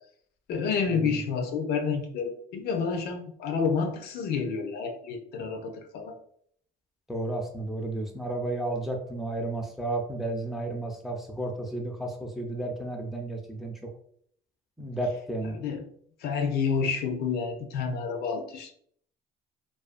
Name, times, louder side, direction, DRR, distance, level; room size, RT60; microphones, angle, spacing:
voice 1, 0.5-6.1 15.5-15.9 16.2-18.7, left 5 dB, 70° left, 5 dB, 0.5 m, -29 dB
voice 2, 7.1-13.7 14.8-15.5, right 2 dB, ahead, 2 dB, 0.4 m, -32 dB
2.4 x 2.2 x 2.4 m, 0.63 s
cardioid pair, 110°, 17 cm